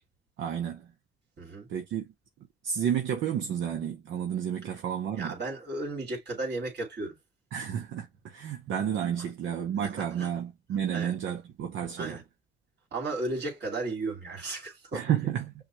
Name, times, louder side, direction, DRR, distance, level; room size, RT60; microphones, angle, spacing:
voice 1, 0.4-0.9 1.7-2.0 2.6-5.4 7.5-12.2 14.9-15.5, right 9 dB, 75° right, 0.8 m, -31 dB
voice 2, 1.4-1.7 5.1-7.2 10.0-10.3 10.9-11.1 12.0-12.2 12.9-15.2, right 2 dB, 55° right, 2.5 m, -34 dB
5.8 x 2.4 x 3.0 m
cardioid pair, 90°, 20 cm